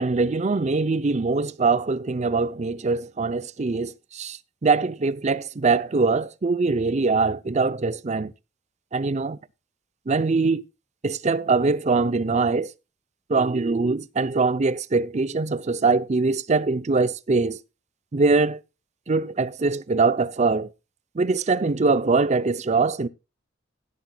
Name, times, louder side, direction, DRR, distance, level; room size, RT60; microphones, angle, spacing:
voice 1, 0.0-8.3 8.9-9.4 10.1-10.6 11.0-12.7 13.3-17.6 18.1-18.6 19.1-20.7 21.2-23.1, right 4 dB, 40° right, 0.5 m, -23 dB
16.5 x 12.0 x 2.3 m
head